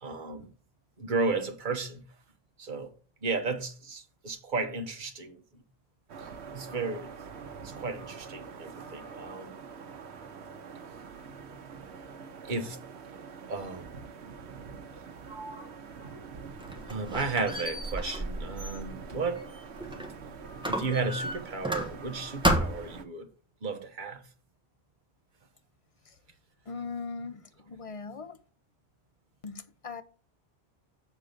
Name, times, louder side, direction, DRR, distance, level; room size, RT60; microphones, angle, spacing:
voice 1, 0.0-0.5 1.0-2.0 2.6-2.9 3.2-5.4 6.2-7.1 7.6-9.6 12.5-12.8 13.5-13.9 16.9-19.4 20.7-23.3 23.6-24.2, right 4 dB, 50° right, 1.2 m, -33 dB
sound 1, 6.1-23.1, right 5 dB, 85° right, 1.1 m, -45 dB
Sliding door, 15.2-18.8 19.1-20.4, right 1 dB, 25° right, 1.7 m, -52 dB
Squeak, 16.4-20.2 20.6-22.1 22.4-23.0, equal, 5° right, 1.1 m, -32 dB
voice 2, 26.7-28.4 29.4-30.0, left 4 dB, 40° left, 0.6 m, -39 dB
7.2 x 3.8 x 6.6 m
omnidirectional pair, 1.1 m